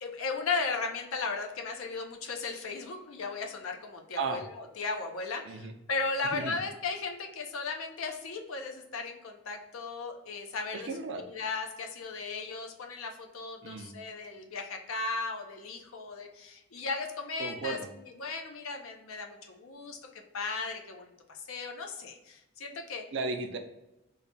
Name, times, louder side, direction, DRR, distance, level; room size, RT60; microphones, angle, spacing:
voice 1, 0.0-10.9 11.2-20.0 20.3-23.0, left 4 dB, 80° left, 3 dB, 0.6 m, -36 dB
voice 2, 10.7-11.2 13.6-13.9 17.4-17.9 23.1-23.6, right 3 dB, 60° right, 5 dB, 0.4 m, -35 dB
3.2 x 2.2 x 3.9 m, 0.93 s
head